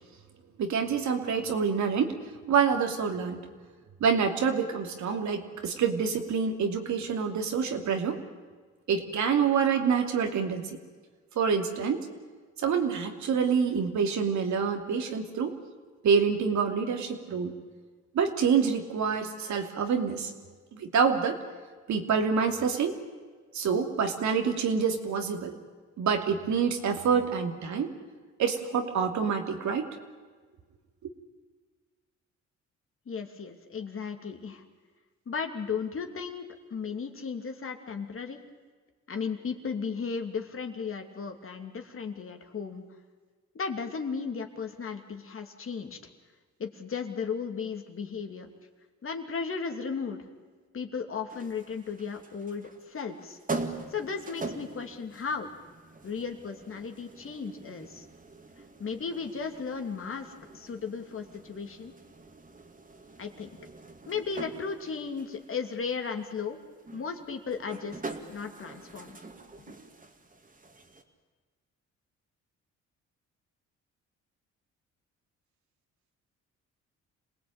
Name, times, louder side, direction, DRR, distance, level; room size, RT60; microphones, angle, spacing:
voice 1, 0.6-2.1 2.5-3.4 4.0-8.2 8.9-10.8 11.4-12.1 12.6-15.6 16.0-17.5 18.1-20.3 20.7-21.4 21.9-23.0 23.5-25.5 26.0-27.9 28.4-29.9, right 6 dB, 70° right, 4 dB, 2.9 m, -27 dB
voice 2, 33.1-34.6 35.3-38.4 39.1-42.8 43.5-46.0 46.6-48.5 49.0-50.2 50.7-53.4 53.9-55.5 56.0-58.1 58.8-61.9 63.2-63.5 64.1-66.6 66.9-69.2 69.7-69.8, left 5 dB, 45° left, 5 dB, 2.8 m, -35 dB
sound 1, 51.3-71.0, right 3 dB, 25° right, 2.8 m, -43 dB
27.0 x 18.5 x 8.9 m, 1.5 s
cardioid pair, 90°, 30 cm